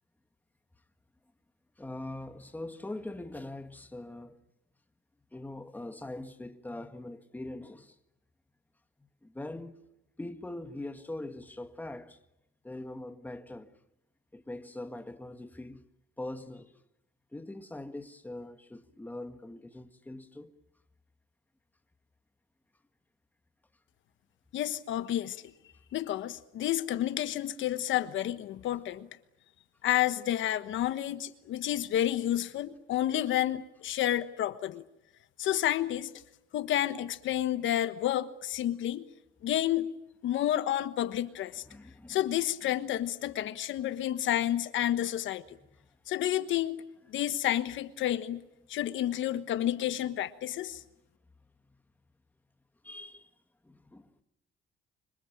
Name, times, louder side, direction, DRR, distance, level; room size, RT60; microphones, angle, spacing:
voice 1, 1.8-4.4 5.3-8.0 9.2-9.8 10.2-12.2 12.6-13.7 14.3-15.8 16.2-16.8 17.3-20.6 41.7-42.2 52.8-53.3 53.6-54.1, left 2 dB, 10° left, 1.7 m, -42 dB
voice 2, 24.5-25.4 25.9-29.1 29.8-34.8 35.4-36.1 36.5-39.0 39.4-39.9 40.2-41.6 42.1-45.6 46.1-46.8 47.1-48.4 48.7-50.8, left 12 dB, 65° left, 1.3 m, -30 dB
27.5 x 25.5 x 7.4 m
cardioid pair, 110°, 21 cm